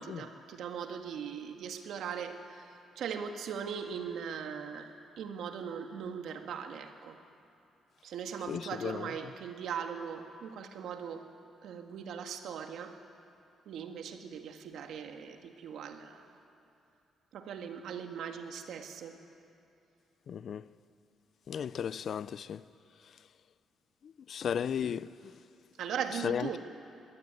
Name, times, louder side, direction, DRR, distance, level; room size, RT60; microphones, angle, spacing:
voice 1, 0.0-7.2 8.0-11.2 11.6-13.0 13.7-16.4 17.3-19.2 25.8-26.6, right 7 dB, 75° right, 1.9 m, -40 dB
voice 2, 8.5-9.1 20.3-20.7 21.5-22.6 23.0-23.2 24.0-25.4 26.1-26.6, left 8 dB, 60° left, 0.5 m, -35 dB
21.5 x 16.5 x 9.6 m
cardioid pair, 90°, 0 cm